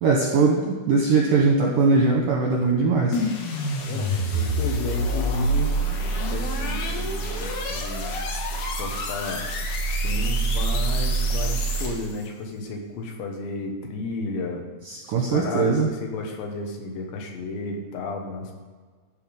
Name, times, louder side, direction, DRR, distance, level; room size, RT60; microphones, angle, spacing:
voice 1, 0.0-3.2 14.9-15.9, right 4 dB, 75° right, 0 dB, 1.9 m, -20 dB
sound 1, 3.1-12.2, right 2 dB, 65° left, 2.0 m, -26 dB
voice 2, 3.8-5.7 6.3-8.2 8.8-9.5 9.9-14.6 15.1-18.5, left 3 dB, 80° left, 2 dB, 3.6 m, -33 dB
13.5 x 5.1 x 5.3 m, 1.5 s
omnidirectional pair, 5.1 m